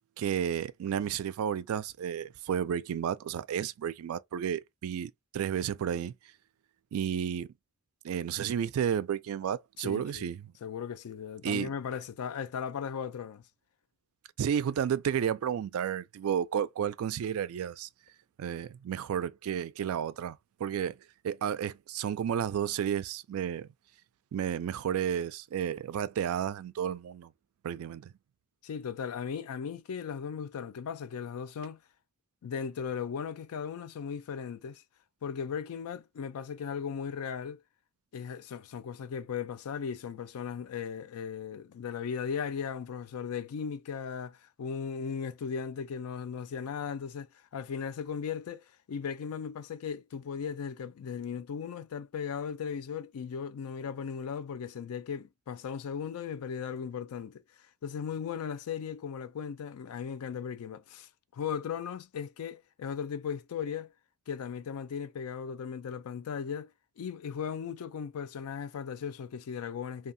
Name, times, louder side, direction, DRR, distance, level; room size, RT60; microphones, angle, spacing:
voice 1, 0.2-6.1 6.9-7.5 8.0-10.5 11.4-11.7 14.4-17.9 18.4-21.0 21.2-23.7 24.3-27.3 27.6-28.1, right 8 dB, 75° right, 0.3 m, -32 dB
voice 2, 9.8-10.2 10.6-13.4 28.6-31.8 32.4-34.8 35.2-37.6 38.1-47.3 47.5-57.4 57.8-63.9 64.3-70.1, left 7 dB, 90° left, 0.4 m, -37 dB
2.7 x 2.3 x 2.5 m
head